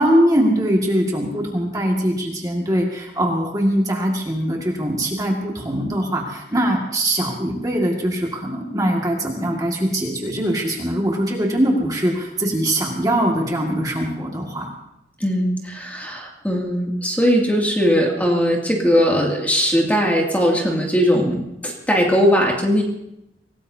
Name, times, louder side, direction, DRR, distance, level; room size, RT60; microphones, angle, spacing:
voice 1, 0.0-14.7, right 1 dB, 20° right, -1 dB, 2.0 m, -22 dB
voice 2, 15.2-22.8, equal, 10° left, -1 dB, 2.4 m, -19 dB
25.5 x 18.5 x 2.8 m, 0.85 s
head